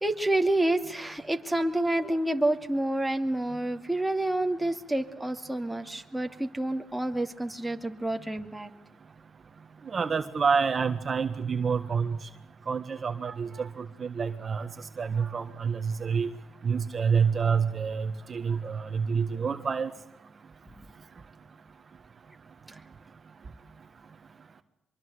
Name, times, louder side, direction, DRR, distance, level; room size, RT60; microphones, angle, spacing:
voice 1, 0.0-8.7 22.7-22.8, right 1 dB, 5° right, 4 dB, 2.7 m, -28 dB
voice 2, 9.9-12.3 12.7-14.7 15.0-16.3 16.6-19.9, right 6 dB, 40° right, 8 dB, 1.6 m, -28 dB
24.5 x 23.5 x 8.2 m, 0.82 s
cardioid pair, 90°, 0 cm